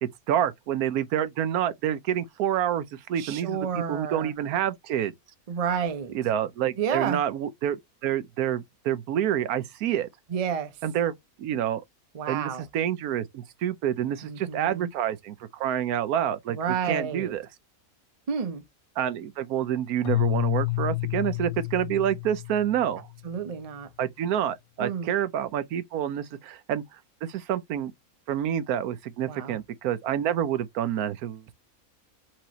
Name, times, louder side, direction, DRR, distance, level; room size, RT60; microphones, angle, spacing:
voice 1, 0.0-5.1 6.1-10.1 10.8-11.8 12.3-17.4 19.0-23.1 24.0-26.8 27.2-27.9 28.3-31.6, right 10 dB, 90° right, 1.1 m, -28 dB
voice 2, 3.2-4.3 5.5-6.1 6.8-7.2 10.3-10.7 12.1-12.7 14.2-14.9 16.5-17.3 18.3-18.6 23.2-23.9 24.8-25.1 29.3-29.6, right 7 dB, 40° right, 0.5 m, -30 dB
Keyboard (musical), 20.0-23.2, left 23 dB, 65° left, 0.8 m, -29 dB
4.6 x 2.9 x 2.9 m
omnidirectional pair, 1.5 m